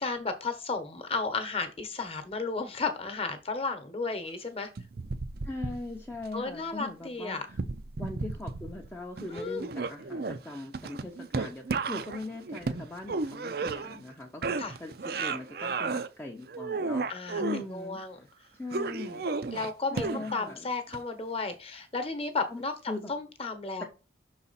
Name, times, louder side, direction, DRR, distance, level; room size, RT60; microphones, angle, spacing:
voice 1, 0.0-4.7 6.3-7.4 9.3-9.6 14.6-14.8 17.1-17.4 17.7-18.3 19.5-22.7 23.1-23.8, left 4 dB, 30° left, 8 dB, 1.0 m, -33 dB
sound 1, 4.8-6.3 7.5-8.9 9.2-14.1 14.4-16.1 16.5-17.6 18.7-20.5 20.9-21.0, right 4 dB, 55° right, 0.5 m, -33 dB
voice 2, 5.4-7.6 8.0-18.3 18.6-19.3 19.9-20.7 22.5-23.1 23.8-23.9, left 2 dB, 10° left, 0 dB, 0.6 m, -40 dB
6.1 x 4.1 x 4.0 m, 0.32 s
head